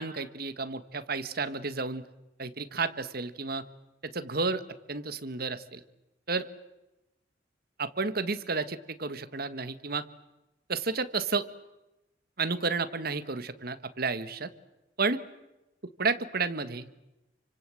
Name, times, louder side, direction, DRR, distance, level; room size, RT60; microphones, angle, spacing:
voice 1, 0.0-2.1 2.4-3.6 4.0-4.6 4.9-5.8 6.3-6.5 7.8-10.0 10.7-11.4 12.4-14.5 15.0-15.3 16.0-16.9, right 4 dB, 55° right, 12 dB, 1.7 m, -31 dB
29.0 x 25.5 x 7.8 m, 0.96 s
head